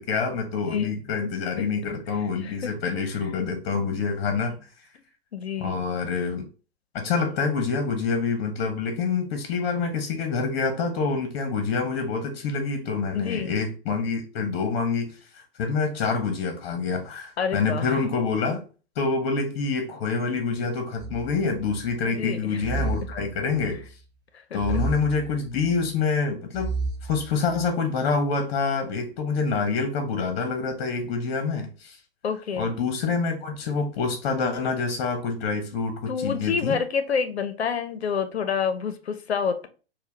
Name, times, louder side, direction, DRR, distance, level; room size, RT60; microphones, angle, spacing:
voice 1, 0.0-4.6 5.6-6.5 6.9-18.6 19.0-23.8 24.5-26.7 27.0-32.0 32.6-36.8, left 4 dB, 50° left, 0.9 m, -26 dB
voice 2, 5.3-5.8 13.1-13.5 17.4-17.9 22.0-22.6 24.5-24.6 32.2-32.7 36.1-39.7, left 6 dB, 85° left, 0.6 m, -28 dB
sound 1, 21.0-22.0 22.6-23.9 24.6-25.9 26.5-27.7, right 4 dB, 25° right, 0.7 m, -32 dB
4.4 x 2.2 x 3.2 m
hypercardioid pair, 110°, 31 cm